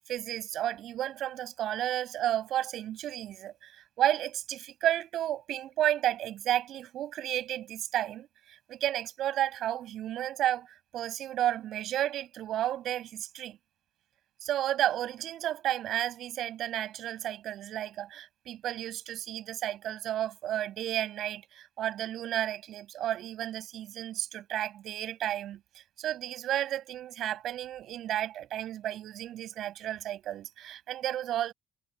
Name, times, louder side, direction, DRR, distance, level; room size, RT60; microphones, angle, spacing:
voice 1, 0.0-10.7 10.9-13.6 14.4-31.5, right 12 dB, 80° right, 7.9 m, -32 dB
cardioid pair, 90°, 0 cm